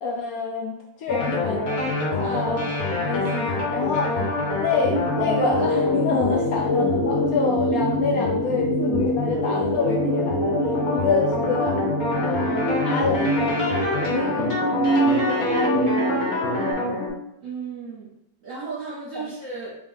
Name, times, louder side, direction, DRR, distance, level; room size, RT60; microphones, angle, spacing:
voice 1, 0.0-1.8 2.1-2.7 3.0-4.3 4.6-10.5 10.9-11.8 12.2-16.0 19.2-19.3, left 4 dB, 75° left, -1 dB, 0.8 m, -27 dB
sound 1, 1.1-17.1, left 2 dB, 55° left, 1.3 m, -26 dB
voice 2, 2.2-2.6 17.4-18.1 18.4-19.8, right 4 dB, 55° right, -7 dB, 1.0 m, -35 dB
sound 2, 4.8-16.7, equal, 35° left, 0.4 m, -26 dB
3.6 x 3.0 x 3.7 m, 0.82 s
omnidirectional pair, 2.0 m